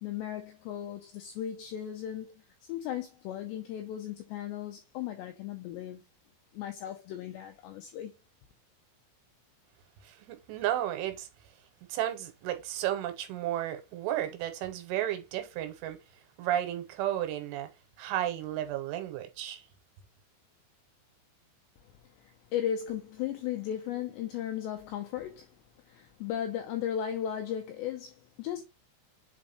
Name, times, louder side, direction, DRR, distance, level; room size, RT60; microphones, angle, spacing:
voice 1, 0.0-6.0 6.5-8.1 22.0-25.6 25.8-28.6, left 10 dB, 85° left, 2.5 m, -36 dB
voice 2, 10.0-11.3 11.9-16.0 16.4-17.7 18.0-19.6, right 12 dB, 85° right, 3.2 m, -33 dB
7.7 x 4.5 x 3.0 m
omnidirectional pair, 5.8 m